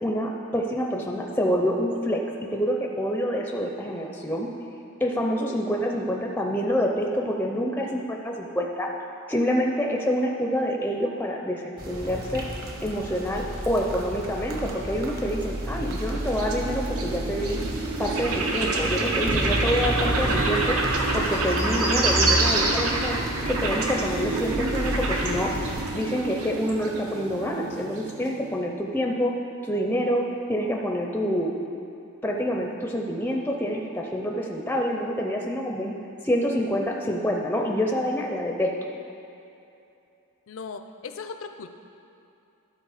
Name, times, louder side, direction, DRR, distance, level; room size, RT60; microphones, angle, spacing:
voice 1, 0.0-2.2 2.5-4.5 5.0-8.9 9.3-12.4 12.8-17.6 18.0-20.8 21.1-23.2 23.5-25.5 25.9-29.3 29.6-31.5 32.2-35.9 36.2-38.7, equal, 10° left, 1 dB, 0.4 m, -27 dB
sound 1, 11.8-25.8, right 1 dB, 45° right, 0.9 m, -30 dB
sound 2, 15.2-28.5, right 2 dB, 85° right, 0.9 m, -29 dB
voice 2, 40.5-41.7, left 5 dB, 65° left, 8 dB, 0.5 m, -37 dB
11.5 x 4.0 x 4.8 m, 2.8 s
head